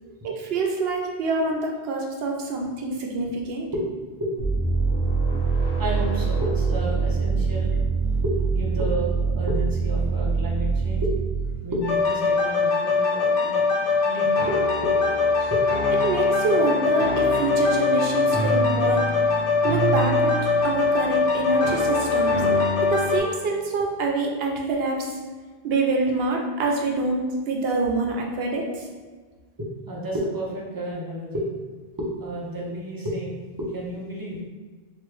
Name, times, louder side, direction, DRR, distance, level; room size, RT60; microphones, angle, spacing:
voice 1, 0.2-3.7 8.1-8.2 15.4-15.5 16.0-19.0 19.6-20.3 20.6-22.4 22.8-25.2 25.6-28.9, right 3 dB, 75° right, 1 dB, 0.8 m, -26 dB
sound 1, 4.4-11.8, right 5 dB, 70° left, 0.9 m, -24 dB
voice 2, 5.6-7.8 8.2-11.1 11.6-13.7 14.0-15.2 15.5-15.6 22.4-22.5 23.8-23.9 29.6-31.5 32.0-34.4, equal, 30° right, -3 dB, 0.5 m, -31 dB
sound 2, 11.8-23.2, left 3 dB, 85° left, 1.2 m, -22 dB
3.0 x 2.5 x 3.1 m, 1.4 s
omnidirectional pair, 1.0 m